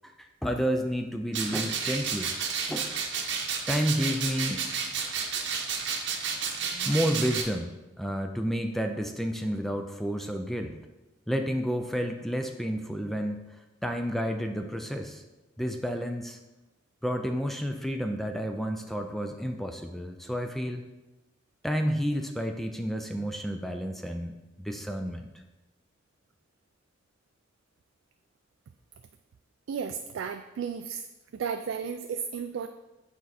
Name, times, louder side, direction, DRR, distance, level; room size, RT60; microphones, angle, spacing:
voice 1, 0.0-2.3 2.7-2.9 3.7-4.7 6.9-7.7 8.0-10.7 11.3-13.6 13.8-15.2 15.6-16.4 17.0-20.8 21.6-25.4, equal, ahead, 5 dB, 0.4 m, -30 dB
sound 1, 1.3-7.4, right 6 dB, 65° right, 0.9 m, -31 dB
voice 2, 29.7-31.0 31.3-32.7, right 6 dB, 80° right, 7 dB, 0.3 m, -33 dB
7.2 x 4.6 x 4.1 m, 1.0 s
head